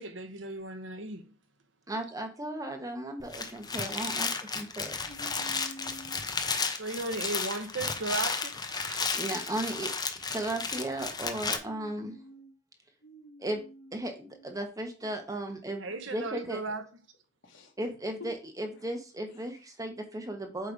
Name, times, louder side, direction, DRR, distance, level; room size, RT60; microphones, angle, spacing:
voice 1, 0.0-1.3 6.8-9.1 15.8-16.8, right 2 dB, 75° right, 1.2 m, -36 dB
voice 2, 1.9-5.0 9.1-9.9 10.3-12.2 13.4-13.6 13.9-15.8 16.1-16.6 17.8-20.7, right 1 dB, 20° right, 1.1 m, -35 dB
voice 3, 2.4-3.2 5.1-6.3 11.6-12.5 13.0-14.5 15.0-15.4 17.4-17.7 18.6-18.9, right 1 dB, 75° left, 1.7 m, -50 dB
sound 1, 3.2-11.6, left 4 dB, 20° left, 0.7 m, -33 dB
8.1 x 3.2 x 5.0 m
head